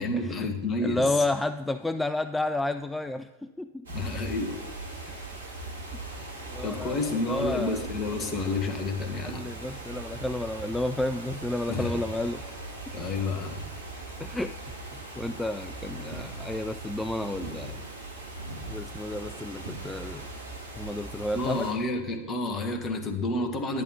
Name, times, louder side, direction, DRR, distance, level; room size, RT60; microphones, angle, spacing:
voice 1, 0.0-1.1 3.9-4.6 6.6-9.5 11.7-12.0 12.9-13.7 21.3-23.8, left 2 dB, 25° left, 5 dB, 1.6 m, -30 dB
voice 2, 0.8-3.9 5.1-5.6 6.5-7.0 7.3-7.8 9.2-12.4 14.2-14.6 15.2-17.8 18.7-20.3 20.8-21.7, left 2 dB, 5° left, 10 dB, 0.3 m, -31 dB
sound 1, 3.8-21.7, right 2 dB, 70° right, 2.7 m, -39 dB
10.5 x 10.5 x 4.0 m, 1.2 s
figure-of-eight pair, 90°, 0 cm